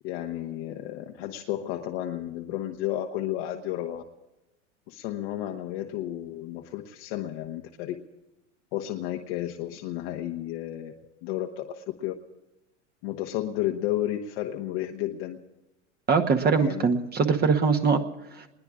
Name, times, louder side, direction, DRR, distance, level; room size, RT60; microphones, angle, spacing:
voice 1, 0.0-4.0 4.9-8.0 8.7-10.9 11.2-12.1 13.0-15.4 16.6-16.9, left 13 dB, 55° left, 3 dB, 1.1 m, -32 dB
voice 2, 16.1-18.0 18.3-18.5, right 5 dB, 25° right, 6 dB, 1.1 m, -22 dB
28.5 x 21.0 x 2.5 m, 1.0 s
hypercardioid pair, 100°, 36 cm